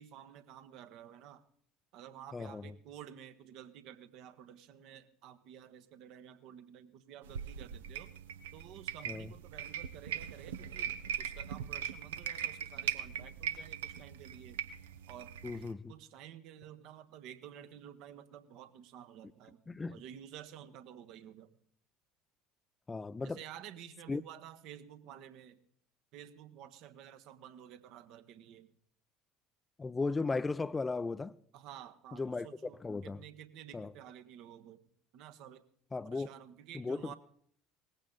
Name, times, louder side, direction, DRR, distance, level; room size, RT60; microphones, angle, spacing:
voice 1, 0.0-1.4 1.9-8.1 8.5-10.9 11.2-14.6 15.1-15.4 15.9-19.6 19.9-21.5 23.2-25.6 26.1-28.7 31.5-34.9 35.1-35.6 36.0-37.2, right 10 dB, 60° right, 1.4 m, -52 dB
voice 2, 2.3-2.6 9.1-9.3 15.4-15.9 19.7-20.0 22.9-23.4 24.1-24.2 29.8-31.3 32.2-32.5 32.8-33.2 33.7-33.9 35.9-36.3 36.7-37.1, left 3 dB, 20° left, 0.6 m, -36 dB
sound 1, 7.2-15.7, right 9 dB, 75° right, 0.9 m, -40 dB
19.5 x 15.5 x 4.0 m
figure-of-eight pair, 65°, 0 cm